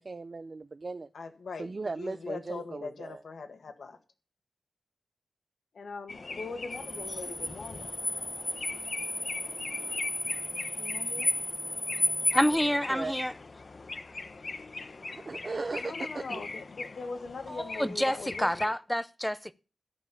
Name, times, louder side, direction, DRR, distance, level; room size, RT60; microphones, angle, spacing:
voice 1, 0.0-1.1 1.6-3.2 12.9-13.2 15.1-16.4, right 3 dB, 40° right, 0.5 m, -37 dB
voice 2, 1.1-4.0 5.7-7.9 10.8-11.3 15.8-18.7, left 4 dB, 75° left, 1.9 m, -41 dB
sound 1, 6.1-18.7, left 3 dB, 45° left, 0.9 m, -41 dB
sound 2, 6.7-12.6, left 1 dB, 25° left, 1.5 m, -33 dB
voice 3, 12.3-13.3 17.5-19.5, equal, 5° left, 0.6 m, -28 dB
13.0 x 5.6 x 6.9 m
wide cardioid pair, 105°, 0 cm